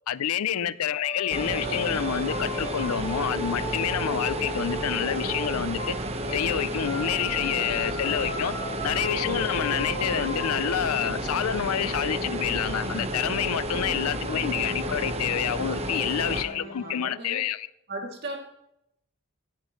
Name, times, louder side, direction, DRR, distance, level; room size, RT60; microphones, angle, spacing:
voice 1, 0.1-5.9 6.3-8.5 8.8-17.7, left 9 dB, 80° left, 0.4 m, -28 dB
sound 1, 1.0-6.5 6.8-17.0, left 1 dB, 25° left, 2.2 m, -37 dB
sound 2, 1.3-16.4, right 1 dB, 25° right, 1.0 m, -31 dB
voice 2, 16.0-17.4 17.9-18.4, right 2 dB, 45° right, 2.6 m, -38 dB
16.5 x 10.5 x 3.1 m
head